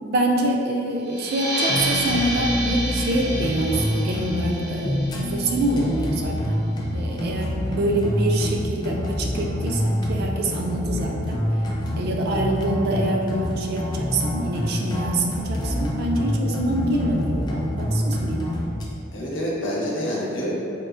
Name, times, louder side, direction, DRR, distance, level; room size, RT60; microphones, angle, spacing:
voice 1, 0.0-6.7 6.9-11.4 12.0-18.5, right 1 dB, 55° right, 1 dB, 0.4 m, -25 dB
sound 1, 1.0-6.3, right 1 dB, 75° right, 1.4 m, -30 dB
sound 2, 1.6-18.8, equal, 20° left, 0.3 m, -26 dB
voice 2, 19.1-20.5, equal, 85° left, -6 dB, 0.8 m, -27 dB
3.6 x 2.4 x 2.4 m, 2.6 s
head